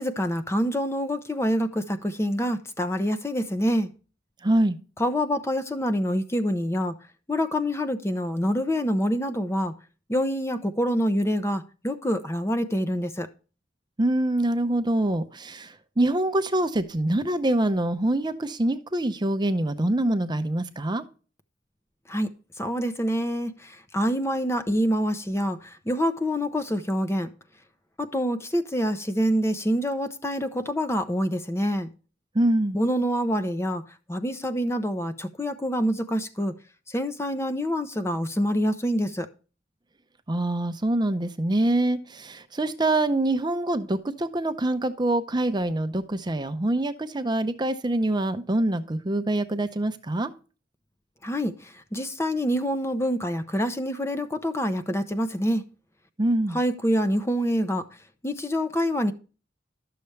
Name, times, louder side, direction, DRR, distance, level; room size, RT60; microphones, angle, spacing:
voice 1, 0.0-3.9 5.0-6.9 7.3-9.7 10.1-13.3 22.1-22.3 22.6-27.3 28.0-31.9 32.7-33.8 34.1-36.5 36.9-39.3 51.2-55.6 56.5-57.9 58.2-59.1, equal, 15° left, 0.6 m, -26 dB
voice 2, 4.4-4.8 14.0-21.0 32.3-32.8 40.3-50.3 56.2-56.6, right 1 dB, 25° right, 0.7 m, -25 dB
12.0 x 6.9 x 3.2 m
head